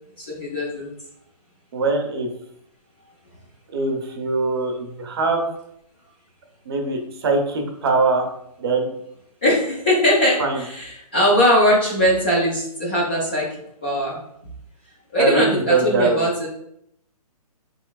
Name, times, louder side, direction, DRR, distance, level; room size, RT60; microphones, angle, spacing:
voice 1, 0.2-0.9 9.4-13.5 13.8-14.2 15.1-16.5, equal, 15° left, -5 dB, 0.3 m, -20 dB
voice 2, 1.7-2.3 3.7-5.4 6.7-8.3 8.6-8.9 10.4-10.6 15.2-16.3, right 3 dB, 40° right, 3 dB, 0.6 m, -22 dB
3.2 x 2.9 x 2.3 m, 0.75 s
hypercardioid pair, 160°, 20 cm